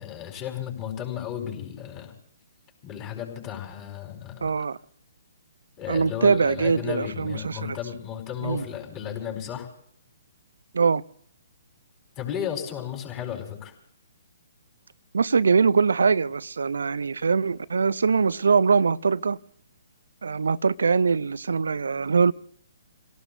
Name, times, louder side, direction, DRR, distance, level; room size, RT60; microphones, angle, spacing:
voice 1, 0.0-2.1 2.8-4.5 5.8-9.7 12.2-13.7, left 9 dB, 25° left, 4.6 m, -34 dB
voice 2, 4.4-4.8 5.9-7.8 8.4-8.6 10.7-11.0 15.1-19.4 20.2-22.3, right 5 dB, 70° right, 0.5 m, -22 dB
29.0 x 18.0 x 2.6 m
figure-of-eight pair, 130°, 0 cm